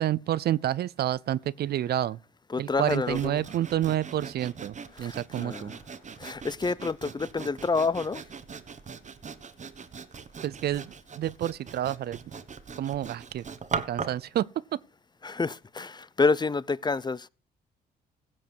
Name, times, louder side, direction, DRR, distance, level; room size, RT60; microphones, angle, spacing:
voice 1, 0.0-2.2 2.6-4.7 5.0-5.7 10.4-10.8 11.2-12.2 12.8-13.4 13.9-14.5, right 12 dB, 60° right, 0.5 m, -28 dB
voice 2, 2.5-3.4 4.9-5.8 6.2-8.2 15.2-17.3, left 4 dB, 25° left, 0.6 m, -28 dB
Sawing, 2.9-14.3, right 5 dB, 40° right, 1.3 m, -40 dB
16.5 x 7.2 x 4.6 m
supercardioid pair, 60°, 19 cm